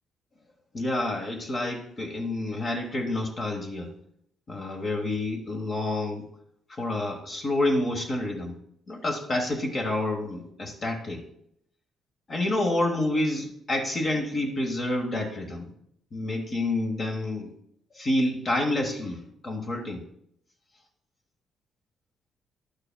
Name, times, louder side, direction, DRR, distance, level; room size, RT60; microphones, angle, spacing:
voice 1, 0.7-3.9 4.5-6.3 6.7-8.6 8.9-11.2 12.3-15.7 16.1-17.5 17.9-20.0, left 1 dB, 45° left, 2 dB, 1.2 m, -28 dB
11.5 x 9.6 x 2.2 m, 0.74 s
cardioid pair, 90°, 0 cm